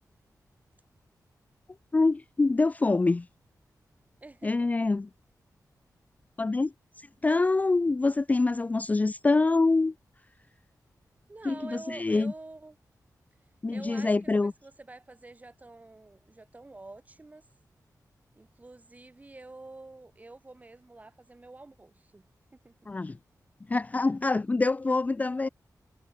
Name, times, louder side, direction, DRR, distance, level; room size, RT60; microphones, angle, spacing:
voice 1, 1.9-3.3 4.4-5.1 6.4-6.7 7.0-9.9 11.5-12.3 13.6-14.5 22.9-23.2 23.7-25.5, left 3 dB, 25° left, 0.4 m, -25 dB
voice 2, 4.2-4.9 11.3-12.8 13.7-17.5 18.3-22.8, right 2 dB, 25° right, 6.4 m, -48 dB
wide cardioid pair, 150°, 7 cm